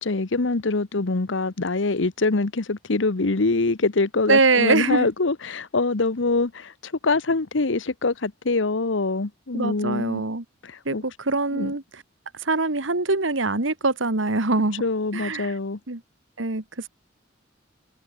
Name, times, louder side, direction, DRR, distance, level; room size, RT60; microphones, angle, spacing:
voice 1, 0.0-10.2 10.6-11.0 11.5-11.7 14.8-15.8, left 3 dB, 70° left, 1.0 m, -24 dB
voice 2, 4.3-5.1 9.5-10.4 10.9-12.0 12.4-14.8 15.1-15.5 15.9-16.0 16.4-16.9, right 3 dB, 75° right, 1.9 m, -23 dB
head